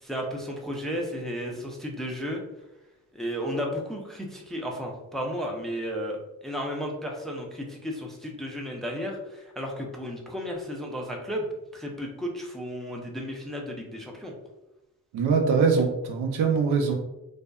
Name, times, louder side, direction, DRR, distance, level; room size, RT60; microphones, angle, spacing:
voice 1, 0.0-2.4 3.1-11.5 11.7-14.3, equal, ahead, 0 dB, 0.5 m, -33 dB
voice 2, 15.1-16.9, right 5 dB, 75° right, 2 dB, 0.6 m, -23 dB
2.6 x 2.1 x 2.2 m, 0.94 s
supercardioid pair, 60°, 39 cm